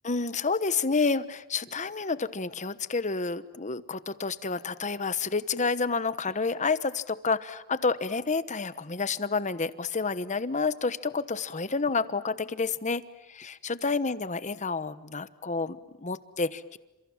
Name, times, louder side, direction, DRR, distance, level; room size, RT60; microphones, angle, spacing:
voice 1, 0.0-16.8, left 4 dB, 35° left, 14 dB, 1.1 m, -29 dB
29.5 x 27.5 x 7.3 m, 1.0 s
head